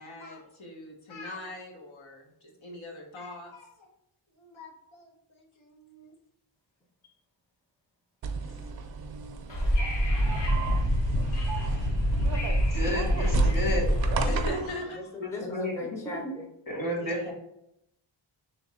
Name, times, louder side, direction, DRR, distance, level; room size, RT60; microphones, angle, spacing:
voice 1, 0.0-3.9 4.4-6.2 14.1-15.3 16.9-17.3, left 1 dB, 85° left, 0 dB, 1.0 m, -41 dB
sound 1, 8.2-14.8, right 6 dB, 55° right, 0.5 m, -34 dB
Wind / Subway metro underground, 9.5-14.5, equal, 65° left, 1.0 m, -26 dB
voice 2, 12.7-13.9 15.2-15.8 16.7-17.3, left 1 dB, 45° left, -2 dB, 1.3 m, -31 dB
voice 3, 15.1-16.5 17.2-17.3, left 2 dB, 5° left, 1 dB, 0.5 m, -38 dB
3.3 x 3.0 x 4.1 m, 0.79 s
wide cardioid pair, 135°, 46 cm